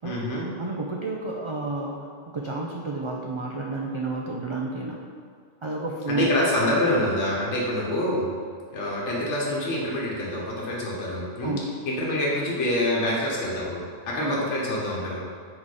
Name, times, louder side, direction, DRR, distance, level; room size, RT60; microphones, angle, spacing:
voice 1, 0.0-0.5 6.1-8.3 8.7-11.6 11.9-15.2, left 1 dB, 70° left, -5 dB, 1.3 m, -26 dB
voice 2, 0.6-5.0 5.6-6.4 11.4-11.7 14.2-14.5, right 2 dB, 50° right, -2 dB, 0.3 m, -30 dB
5.1 x 4.2 x 4.8 m, 2.2 s
omnidirectional pair, 1.3 m